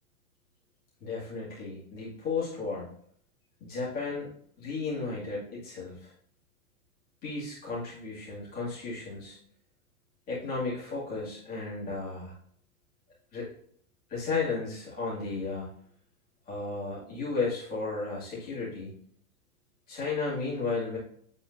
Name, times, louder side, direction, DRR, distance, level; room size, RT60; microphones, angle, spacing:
voice 1, 1.0-2.9 3.6-4.3 4.6-6.1 7.2-9.4 10.3-12.3 13.3-13.5 14.1-15.7 16.5-18.9 19.9-21.0, left 4 dB, 20° left, -7 dB, 2.4 m, -34 dB
8.3 x 4.3 x 2.7 m, 0.63 s
supercardioid pair, 165°, 43 cm